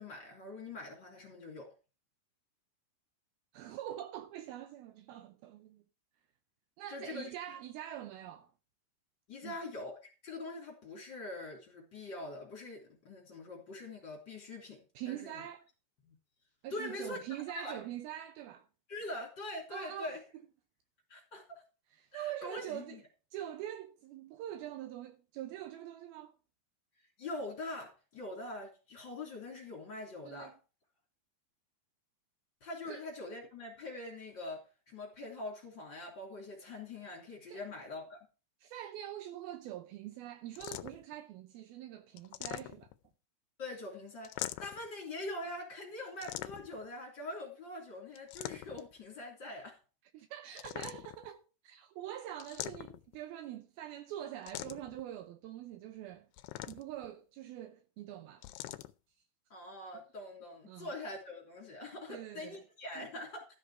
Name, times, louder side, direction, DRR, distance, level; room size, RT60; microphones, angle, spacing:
voice 1, 0.0-1.7 6.9-7.6 9.3-14.8 15.1-15.4 16.0-16.1 16.7-17.8 18.9-20.2 21.1-21.6 22.1-23.0 27.2-30.5 32.6-38.3 43.6-49.8 59.5-63.5, left 2 dB, 30° left, 3.4 m, -44 dB
voice 2, 3.5-5.8 6.8-8.5 9.4-9.6 15.0-15.7 16.6-18.7 19.7-20.2 21.9-23.0 23.3-26.3 30.2-30.6 32.9-33.0 37.5-37.6 38.6-42.9 50.1-56.3 56.7-58.5 60.7-60.9 62.1-62.6 63.0-63.1, right 12 dB, 80° right, 2.3 m, -44 dB
sound 1, 40.6-41.1 42.2-43.1 44.2-44.9 46.2-46.9 48.2-48.9 50.5-51.3 52.4-53.2 54.5-55.0 56.3-57.1 58.4-58.9, left 16 dB, 85° left, 2.7 m, -43 dB
13.0 x 6.5 x 4.9 m
omnidirectional pair, 4.8 m